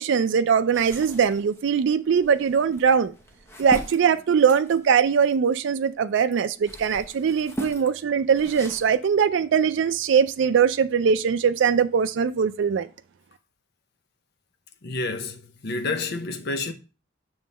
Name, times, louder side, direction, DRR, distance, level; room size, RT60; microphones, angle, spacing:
voice 1, 0.0-3.1 3.6-12.9, right 7 dB, 65° right, 0.4 m, -21 dB
sound 1, 0.7-5.9 6.4-8.9, equal, 15° left, 0.9 m, -39 dB
voice 2, 14.8-16.7, left 3 dB, 60° left, 0.8 m, -29 dB
7.2 x 3.1 x 5.4 m
head